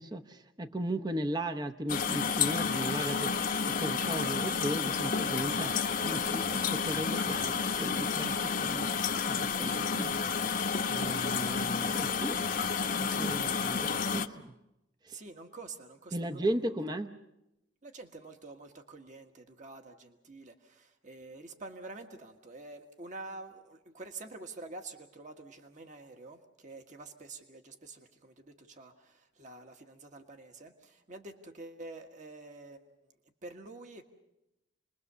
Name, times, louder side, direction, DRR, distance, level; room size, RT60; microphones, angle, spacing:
voice 1, 0.0-8.9 9.3-10.3 10.9-14.5 15.0-15.2 16.1-17.2, right 1 dB, 20° right, 6 dB, 0.8 m, -36 dB
sound 1, 1.9-14.3, left 6 dB, 45° left, 1.0 m, -31 dB
voice 2, 15.1-16.7 17.8-32.8 33.4-34.0, right 3 dB, 40° right, 5 dB, 1.6 m, -47 dB
29.0 x 21.0 x 6.9 m, 0.90 s
head